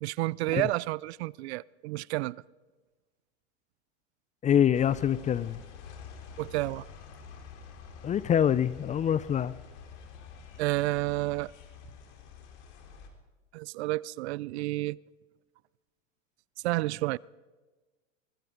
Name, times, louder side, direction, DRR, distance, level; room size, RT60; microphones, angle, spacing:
voice 1, 0.0-2.4 6.4-6.9 10.6-11.5 13.5-15.0 16.6-17.2, right 19 dB, 60° right, 0.6 m, -30 dB
voice 2, 4.4-5.6 8.0-9.5, left 9 dB, 20° left, 0.5 m, -25 dB
sound 1, 4.7-13.1, left 6 dB, 65° left, 4.1 m, -48 dB
24.5 x 21.5 x 5.2 m
hypercardioid pair, 105°, 38 cm